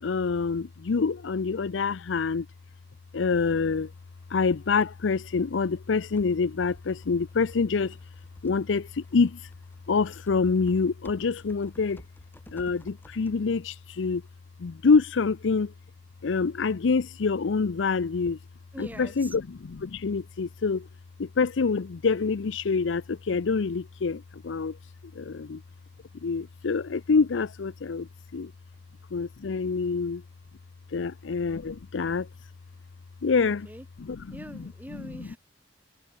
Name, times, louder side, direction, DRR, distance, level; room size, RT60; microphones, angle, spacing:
voice 1, 0.0-2.5 3.1-3.9 4.3-8.0 8.4-9.5 9.9-12.0 12.5-14.2 14.6-15.7 16.2-18.4 18.8-19.4 19.7-20.9 21.2-25.6 26.2-28.5 29.1-30.2 30.9-32.3 33.2-33.6 34.1-34.2 35.2-35.3, left 4 dB, 85° left, 0.5 m, -26 dB
Typing, 3.3-14.4, equal, 10° left, 6.8 m, -56 dB
voice 2, 18.7-19.4 33.4-33.9 34.3-35.4, right 1 dB, 10° right, 4.2 m, -43 dB
head